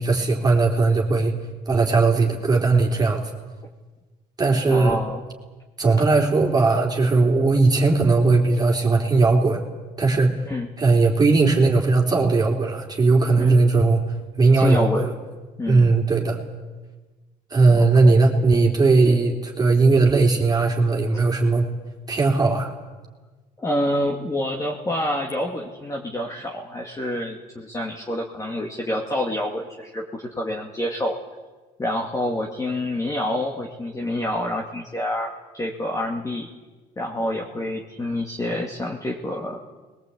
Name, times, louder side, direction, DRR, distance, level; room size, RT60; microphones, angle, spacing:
voice 1, 0.0-1.3 1.7-3.3 4.4-5.0 5.8-9.6 10.0-10.3 10.8-14.0 14.4-15.1 15.7-16.4 17.5-21.7 22.1-22.7, right 3 dB, 25° right, 0 dB, 3.7 m, -18 dB
voice 2, 4.6-5.2 10.4-10.7 13.4-13.6 14.5-15.1 15.6-15.9 17.7-18.2 23.6-31.2 31.8-36.5 37.0-39.6, left 1 dB, 20° left, -1 dB, 2.3 m, -27 dB
21.5 x 20.5 x 8.6 m, 1.3 s
cardioid pair, 110°, 17 cm